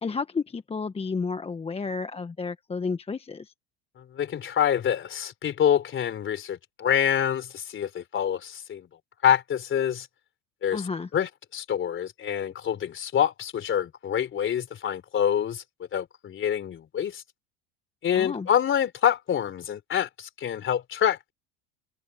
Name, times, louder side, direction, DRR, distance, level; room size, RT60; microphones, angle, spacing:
voice 1, 0.0-3.5 10.7-11.1 18.1-18.5, left 4 dB, 20° left, 1.2 m, -31 dB
voice 2, 4.0-8.9 9.2-10.1 10.6-10.8 11.1-15.6 15.9-17.2 18.0-21.3, left 9 dB, 35° left, 3.5 m, -26 dB
supercardioid pair, 95°, 33 cm